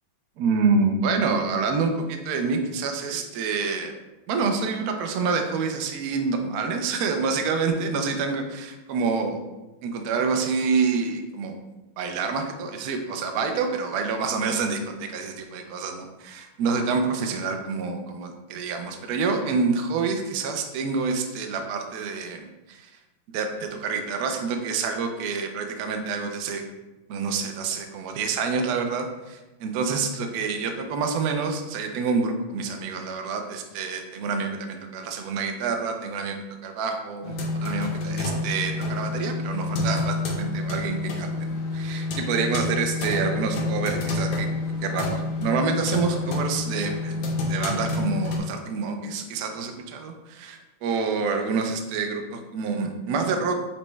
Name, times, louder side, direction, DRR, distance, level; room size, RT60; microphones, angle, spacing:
voice 1, 0.4-3.9 4.3-9.4 9.8-11.5 12.0-22.9 23.3-26.6 27.1-36.4 36.6-44.5 44.8-53.6, right 4 dB, 80° right, 4 dB, 0.8 m, -27 dB
sound 1, 37.2-48.4, left 2 dB, 85° left, 1.5 m, -28 dB
6.0 x 2.2 x 3.1 m, 1.1 s
omnidirectional pair, 2.2 m